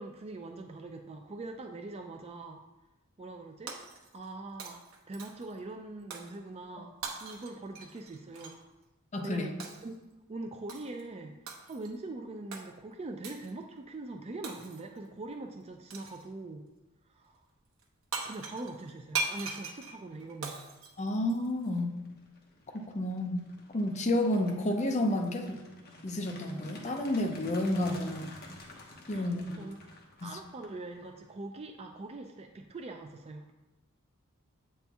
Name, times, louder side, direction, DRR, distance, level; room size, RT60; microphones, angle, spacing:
voice 1, 0.0-2.6 3.2-3.7 4.1-6.9 7.2-8.6 9.2-9.5 9.8-9.9 10.3-16.7 17.1-17.4 18.2-20.6 29.1-29.8 30.2-33.5, right 2 dB, 30° right, 4 dB, 0.4 m, -42 dB
Shatter, 3.7-4.3 4.6-5.5 6.1-6.4 7.0-8.6 9.6-9.9 10.7-11.0 11.5-11.9 12.5-12.7 13.2-13.5 14.4-15.0 15.9-16.3 17.8-17.9 18.1-21.7, right 4 dB, 70° right, 0.9 m, -40 dB
voice 2, 9.1-9.5 21.0-22.0 22.7-23.4 23.7-25.6 26.0-28.3 29.1-29.6 30.3-30.4, left 1 dB, 35° left, 3 dB, 0.6 m, -30 dB
sound 1, 20.7-20.8 21.2-31.3, left 2 dB, 50° left, 1.1 m, -52 dB
8.0 x 4.3 x 3.5 m, 1.0 s
head